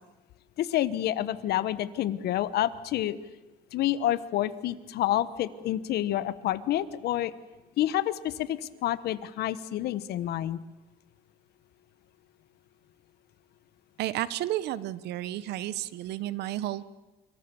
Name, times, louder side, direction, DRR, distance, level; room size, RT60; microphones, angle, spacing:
voice 1, 0.6-3.2 3.7-7.3 7.8-10.6, left 13 dB, 70° left, 15 dB, 1.1 m, -28 dB
voice 2, 14.0-16.8, right 14 dB, 80° right, 16 dB, 1.0 m, -32 dB
26.0 x 23.0 x 7.0 m, 1.1 s
cardioid pair, 110°, 17 cm